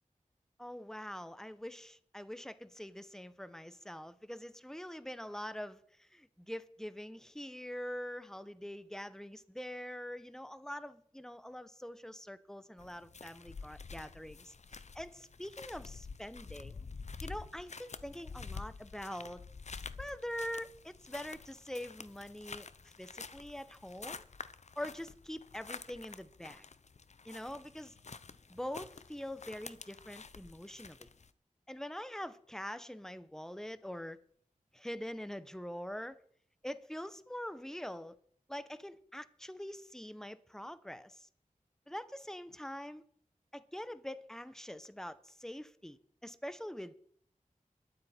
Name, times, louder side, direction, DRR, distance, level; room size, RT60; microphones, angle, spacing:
voice 1, 0.6-16.8 17.2-19.4 20.0-24.2 24.8-26.6 27.2-27.9 28.5-31.1 31.7-34.2 34.7-36.2 36.6-38.2 38.5-41.3 41.9-43.0 43.5-46.9, equal, 5° left, 0.8 m, -44 dB
sound 1, 12.8-31.3, left 4 dB, 55° left, 0.7 m, -49 dB
22.0 x 7.8 x 4.3 m
wide cardioid pair, 55°, 14 cm